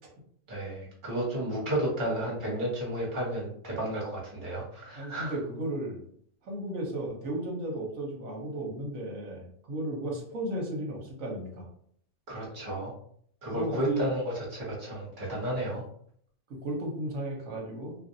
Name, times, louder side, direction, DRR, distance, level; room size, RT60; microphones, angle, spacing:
voice 1, 0.5-5.3 12.3-12.9 13.4-15.8, right 1 dB, 30° right, -4 dB, 1.2 m, -32 dB
voice 2, 5.0-6.0 6.4-11.7 13.5-14.1 15.6-15.8 16.6-18.0, right 1 dB, 55° right, -1 dB, 1.1 m, -34 dB
3.1 x 2.5 x 2.6 m, 0.62 s
omnidirectional pair, 1.8 m